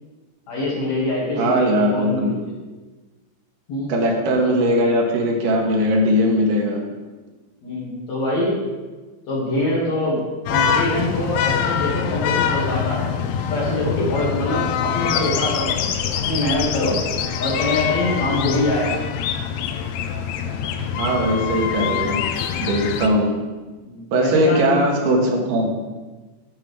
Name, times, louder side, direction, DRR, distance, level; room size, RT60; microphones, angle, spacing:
voice 1, 0.5-2.5 3.7-3.9 7.6-8.6 9.3-10.2 10.5-15.9 16.2-17.0 17.4-19.0 23.8-24.8, left 1 dB, 60° left, -5 dB, 3.2 m, -24 dB
voice 2, 1.4-2.4 3.9-6.8 21.0-22.2 22.6-23.4 24.1-25.8, equal, 85° right, 1 dB, 2.7 m, -19 dB
sound 1, 10.5-23.1, left 8 dB, 80° left, 1.6 m, -24 dB
10.5 x 5.8 x 3.3 m, 1.3 s
omnidirectional pair, 3.7 m